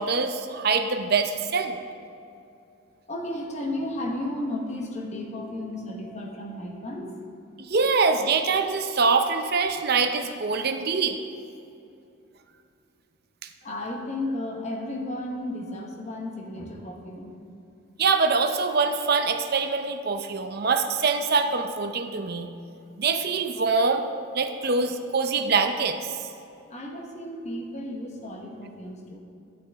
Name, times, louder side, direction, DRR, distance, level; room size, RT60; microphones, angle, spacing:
voice 1, 0.0-1.8 7.6-11.2 13.4-13.5 18.0-22.5 23.0-24.0 24.3-26.2, right 4 dB, 50° right, 7 dB, 0.6 m, -24 dB
voice 2, 3.1-7.1 13.6-17.3 26.7-29.2, left 1 dB, 35° left, 0 dB, 1.2 m, -33 dB
10.5 x 8.8 x 3.5 m, 2.6 s
head